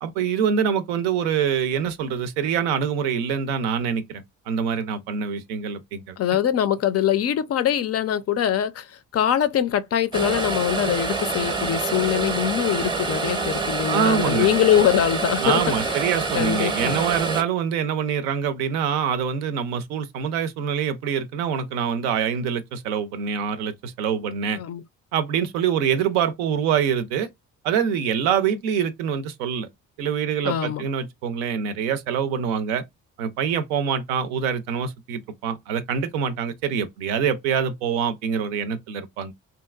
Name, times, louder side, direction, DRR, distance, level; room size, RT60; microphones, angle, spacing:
voice 1, 0.0-6.2 13.9-14.5 15.4-24.6 25.1-27.3 27.6-29.7 30.0-32.8 33.2-39.3, right 7 dB, 80° right, 0.5 m, -25 dB
voice 2, 6.2-15.9 16.3-17.0 24.5-24.8 30.4-30.8, left 10 dB, 40° left, 0.4 m, -23 dB
sound 1, 10.1-17.4, right 3 dB, 10° right, 0.6 m, -26 dB
2.8 x 2.4 x 2.3 m
hypercardioid pair, 45°, 41 cm